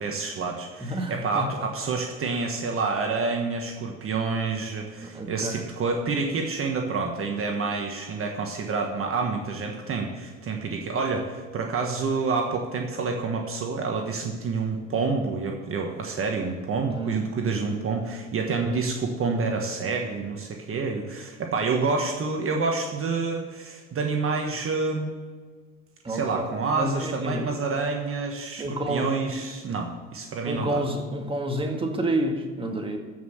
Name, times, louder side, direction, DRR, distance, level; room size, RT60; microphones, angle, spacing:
voice 1, 0.0-25.1 26.1-30.8, right 4 dB, 40° right, 2 dB, 1.5 m, -28 dB
voice 2, 0.8-1.4 5.0-5.6 16.9-17.3 26.0-26.5 26.7-27.5 28.6-29.1 30.4-33.0, right 1 dB, 15° right, 3 dB, 1.9 m, -29 dB
14.0 x 5.8 x 6.6 m, 1.5 s
supercardioid pair, 90°, 34 cm